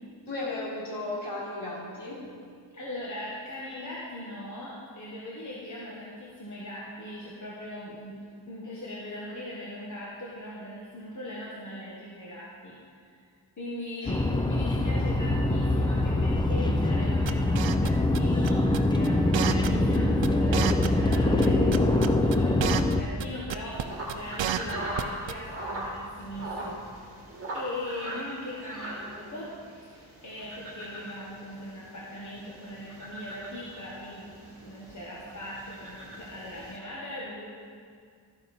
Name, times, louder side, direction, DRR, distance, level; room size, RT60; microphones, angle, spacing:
voice 1, 0.3-2.2 14.0-14.2, left 2 dB, 60° left, -6 dB, 3.4 m, -35 dB
voice 2, 2.7-8.1 8.5-13.2 13.6-26.8 27.5-34.3 34.6-37.5, left 1 dB, 40° left, -6 dB, 1.4 m, -40 dB
sound 1, 14.1-23.0, left 2 dB, 10° left, 0.4 m, -24 dB
sound 2, 17.3-18.2 18.4-18.8 19.0-19.1 19.3-20.0 20.2-20.3 20.5-21.5 21.7-22.9 23.2-23.3 23.5-23.8 24.1-25.0 25.3-25.4, right 10 dB, 70° right, 0.6 m, -30 dB
sound 3, 23.7-36.8, right 1 dB, 30° right, 1.7 m, -40 dB
13.0 x 9.2 x 4.3 m, 2.2 s
wide cardioid pair, 170°, 46 cm